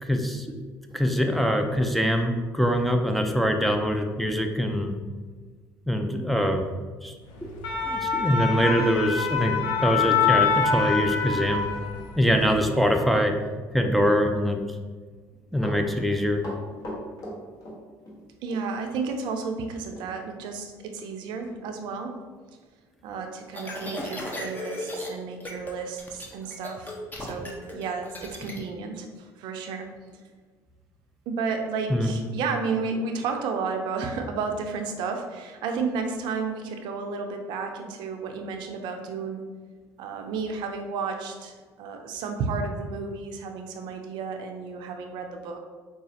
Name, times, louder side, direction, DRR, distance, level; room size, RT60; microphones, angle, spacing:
voice 1, 0.0-0.5 0.9-4.9 5.9-6.7 7.0-7.1 7.4-11.7 12.2-13.3 13.7-14.6 15.5-16.4 31.9-32.1, equal, ahead, 3 dB, 0.4 m, -24 dB
sound 1, 7.4-12.2 12.5-12.7, left 6 dB, 70° left, 0.6 m, -25 dB
Run, 15.3-18.2 18.5-18.6 19.9-20.1 20.4-20.5 21.1-21.2 21.5-21.7 22.2-22.3, equal, 40° left, 1.3 m, -39 dB
voice 2, 18.4-22.2 23.0-26.9 27.2-29.9 31.3-39.4 40.0-45.6, right 4 dB, 70° right, 4 dB, 0.5 m, -32 dB
sound 2, 23.5-25.1 25.4-25.7 26.0-28.6, left 1 dB, 25° left, 0.8 m, -35 dB
4.8 x 2.4 x 2.8 m, 1.4 s
supercardioid pair, 75°, 8 cm